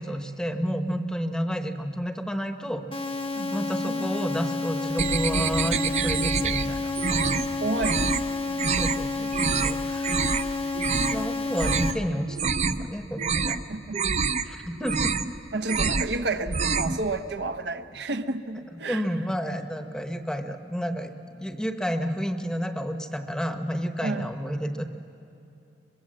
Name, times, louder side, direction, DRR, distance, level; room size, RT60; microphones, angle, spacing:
voice 1, 0.0-2.8 3.5-7.4 8.7-10.5 11.1-12.5 12.8-13.6 14.5-15.1 18.9-21.1 21.4-24.8, equal, 5° left, 6 dB, 0.9 m, -30 dB
sound 1, 2.9-11.9, left 3 dB, 30° left, 0.9 m, -30 dB
voice 2, 3.3-4.1 7.2-8.2 8.4-8.8 9.2-9.6 13.5-14.7 15.5-19.1 24.0-24.4, right 2 dB, 70° right, 8 dB, 0.8 m, -32 dB
sound 2, 5.0-6.7 7.0-7.5 7.8-8.2 8.6-9.0 9.3-9.7 10.0-10.4 10.7-11.2 11.6-11.9 12.3-12.9 13.2-13.6 13.9-14.4 14.8-15.3 15.6-16.1 16.4-17.0, right 5 dB, 40° right, 0.6 m, -26 dB
23.0 x 22.5 x 7.6 m, 2.7 s
head